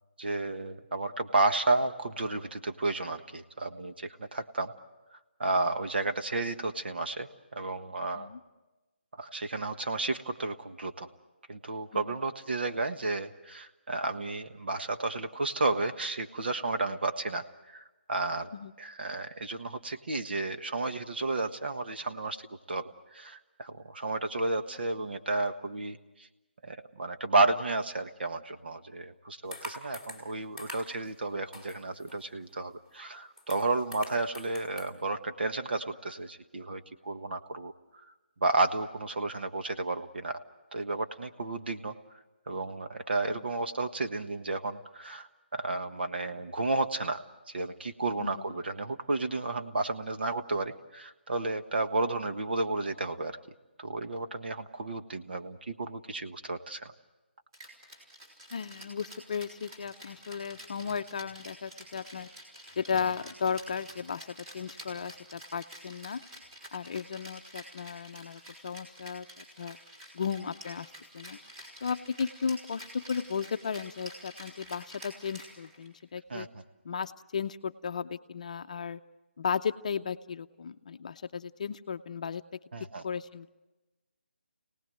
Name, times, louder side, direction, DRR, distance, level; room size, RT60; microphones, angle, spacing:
voice 1, 0.2-4.7 5.4-8.3 9.2-11.1 11.5-17.8 18.1-18.5 18.8-26.3 26.6-37.7 38.4-40.4 40.7-41.9 42.5-47.2 47.5-53.4 53.8-56.9 76.3-76.6 82.7-83.0, right 2 dB, 60° right, 7 dB, 1.5 m, -32 dB
sound 1, 29.5-30.3 30.6-31.1 31.5-32.4 32.9-33.0 33.2-34.9, left 1 dB, 10° right, 2.5 m, -44 dB
voice 2, 48.2-48.5 58.5-62.3 62.8-66.2 66.7-69.8 70.1-71.4 71.8-76.5 76.8-79.0 79.4-82.4 83.0-83.5, left 6 dB, 40° left, 9 dB, 0.7 m, -35 dB
Rattle (instrument), 57.5-76.0, equal, 25° right, 5.3 m, -49 dB
28.0 x 18.5 x 7.8 m, 1.1 s
hypercardioid pair, 170°, 6 cm